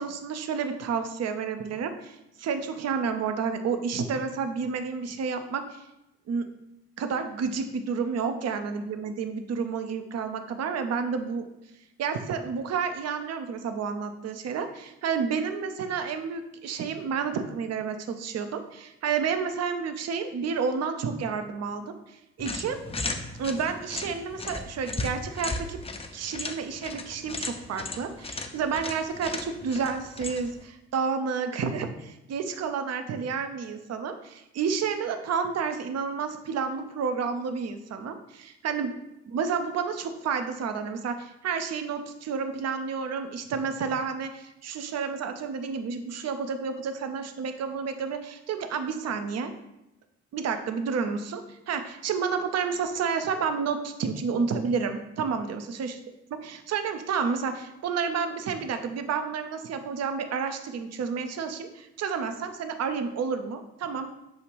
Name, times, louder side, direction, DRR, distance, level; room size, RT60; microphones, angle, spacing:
voice 1, 0.0-5.8 6.3-6.4 7.0-11.4 12.0-21.9 22.4-22.8 23.4-25.8 26.1-39.0 39.3-49.5 50.3-55.9 56.4-64.2, right 6 dB, 45° right, 8 dB, 0.6 m, -30 dB
sound 1, 22.4-30.6, left 3 dB, 15° left, 0.5 m, -36 dB
6.3 x 2.4 x 3.1 m, 0.89 s
hypercardioid pair, 50°, 35 cm